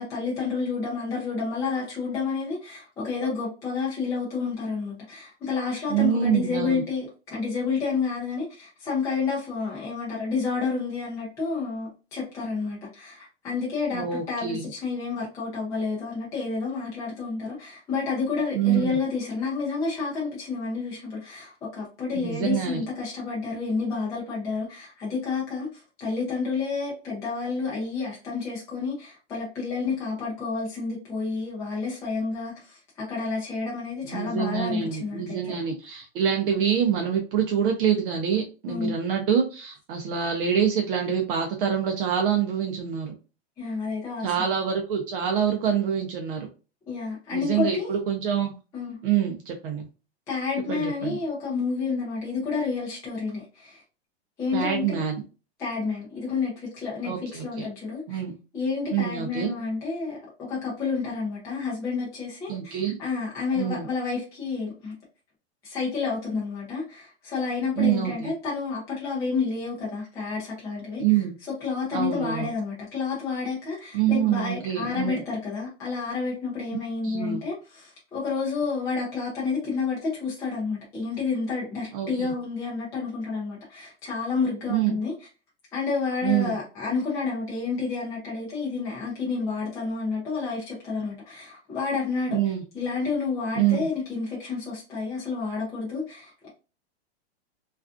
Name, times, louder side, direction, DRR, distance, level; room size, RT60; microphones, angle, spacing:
voice 1, 0.0-7.1 7.3-35.5 38.6-38.9 43.6-44.3 46.9-47.9 48.7-49.0 50.3-53.8 54.4-55.0 55.6-58.2 58.5-64.9 65.6-71.0 71.5-85.1 85.7-92.4 92.7-96.3, left 4 dB, 10° left, 0.4 m, -30 dB
voice 2, 5.9-6.8 13.9-14.7 18.5-19.0 22.1-22.8 34.0-43.1 44.2-46.5 47.3-48.5 49.0-49.9 50.7-51.2 54.5-55.2 57.0-57.7 58.1-58.3 58.9-59.5 62.5-63.0 63.6-63.9 67.8-68.3 71.0-71.3 71.9-72.5 73.9-75.2 77.0-77.4 81.9-82.3 84.7-85.0 86.2-86.5 92.3-92.6 93.5-93.9, right 9 dB, 55° right, 0.5 m, -26 dB
2.4 x 2.3 x 2.4 m
supercardioid pair, 155°, 33 cm